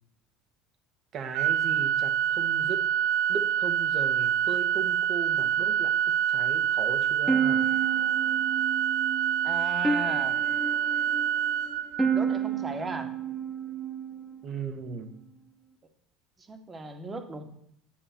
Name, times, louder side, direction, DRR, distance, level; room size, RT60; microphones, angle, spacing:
voice 1, 1.1-2.8 3.3-7.6 14.4-15.1, right 6 dB, 50° right, 7 dB, 2.2 m, -37 dB
Organ, 1.3-12.4, right 9 dB, 75° right, 0.6 m, -26 dB
sound 1, 7.3-14.4, right 5 dB, 5° right, 1.4 m, -31 dB
voice 2, 9.4-10.4 12.1-13.1 16.5-17.4, right 2 dB, 25° right, 6 dB, 2.3 m, -36 dB
11.5 x 8.5 x 6.9 m, 0.69 s
hypercardioid pair, 85°, 0 cm